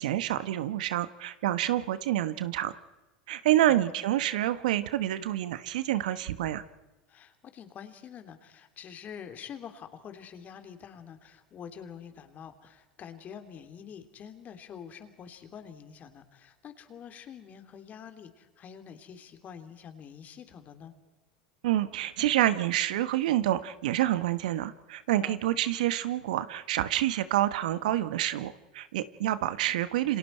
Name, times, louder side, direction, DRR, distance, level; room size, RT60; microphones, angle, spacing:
voice 1, 0.0-2.7 3.3-6.6 21.6-30.2, right 13 dB, 70° right, 13 dB, 1.2 m, -28 dB
voice 2, 7.1-20.9 25.2-25.4, left 8 dB, 40° left, 7 dB, 3.0 m, -46 dB
28.5 x 26.5 x 4.5 m, 1.1 s
hypercardioid pair, 85°, 4 cm